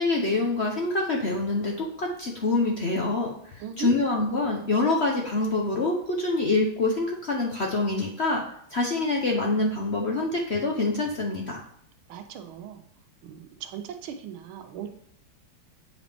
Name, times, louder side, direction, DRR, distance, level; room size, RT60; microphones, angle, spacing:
voice 1, 0.0-8.4 8.7-11.6, left 2 dB, 60° left, 0 dB, 0.7 m, -26 dB
voice 2, 3.6-3.9 12.1-12.8 13.2-14.9, right 8 dB, 80° right, 6 dB, 1.6 m, -38 dB
8.1 x 5.1 x 3.4 m, 0.68 s
omnidirectional pair, 2.3 m